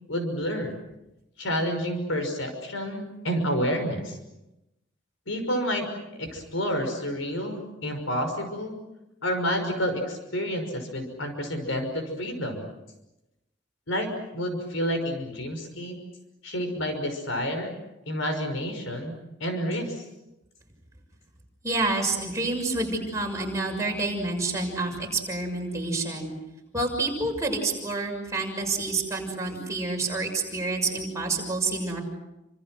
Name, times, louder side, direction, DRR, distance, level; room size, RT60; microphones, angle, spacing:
voice 1, 0.1-0.8 1.4-4.2 5.3-5.9 6.2-8.7 9.2-12.7 13.9-16.0 16.4-17.7 18.1-19.1 19.4-20.0, equal, 85° left, 6 dB, 5.8 m, -29 dB
voice 2, 21.6-26.3 26.7-32.0, right 3 dB, 15° right, 0 dB, 6.5 m, -28 dB
29.5 x 27.0 x 6.4 m, 0.93 s
head